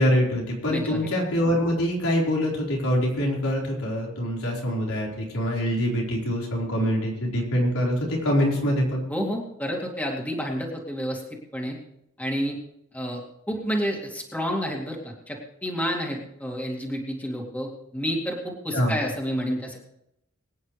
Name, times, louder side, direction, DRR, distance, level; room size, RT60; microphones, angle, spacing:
voice 1, 0.0-9.0 18.7-19.0, equal, 90° left, -2 dB, 4.5 m, -24 dB
voice 2, 0.7-1.0 9.1-11.2 11.5-11.8 12.2-12.6 12.9-13.2 13.5-19.8, equal, 10° left, 0 dB, 2.3 m, -29 dB
24.0 x 9.6 x 3.3 m, 0.81 s
head